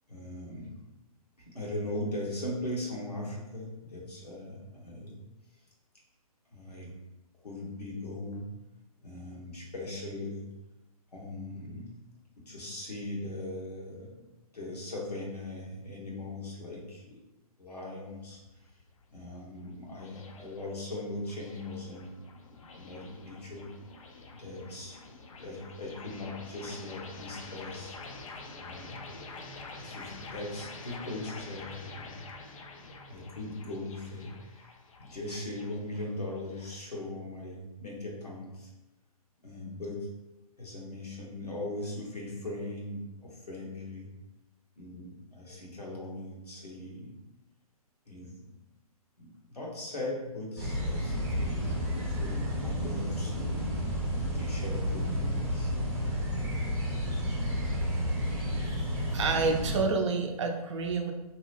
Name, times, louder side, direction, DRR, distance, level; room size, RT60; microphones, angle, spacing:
voice 1, 0.1-0.7 1.4-5.2 6.5-6.9 7.4-8.5 9.0-10.4 11.1-11.9 12.4-14.3 14.5-17.2 17.6-18.4 19.1-22.2 22.7-23.7 24.3-25.0 25.4-27.9 28.5-29.3 29.7-32.1 33.1-34.7 35.0-38.7 39.4-40.0 40.6-44.1 44.8-47.1 48.1-48.5 49.2-55.7, left 1 dB, 85° left, -3 dB, 1.0 m, -39 dB
sound 1, 18.0-37.0, left 3 dB, 60° left, 0.4 m, -47 dB
sound 2, 50.6-59.8, equal, 15° right, 0.8 m, -31 dB
voice 2, 59.1-61.1, right 4 dB, 50° right, 3 dB, 0.5 m, -28 dB
2.7 x 2.0 x 3.2 m, 1.0 s
figure-of-eight pair, 130°, 20 cm